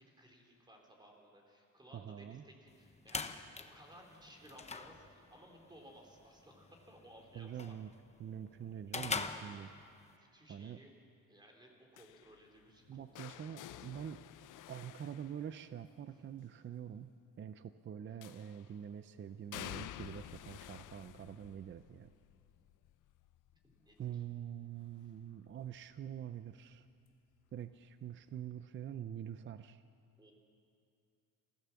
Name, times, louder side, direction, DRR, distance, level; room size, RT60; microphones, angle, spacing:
voice 1, 0.0-7.7 9.3-9.8 10.2-10.9 11.3-14.0 16.1-16.2 23.6-24.2 25.0-25.1 30.2-30.3, equal, 10° right, 1 dB, 3.3 m, -60 dB
voice 2, 1.9-2.4 7.3-7.9 8.2-9.7 10.5-10.8 12.9-14.2 14.7-22.1 24.0-26.9 27.5-29.8, right 9 dB, 35° right, 12 dB, 0.5 m, -45 dB
sound 1, 2.7-10.2, left 4 dB, 20° left, 0.8 m, -45 dB
sound 2, 12.0-16.0 18.2-18.8 19.5-25.3 25.7-26.1 27.3-27.4, left 13 dB, 60° left, 0.6 m, -52 dB
26.5 x 16.0 x 7.1 m, 2.5 s
cardioid pair, 150°, 36 cm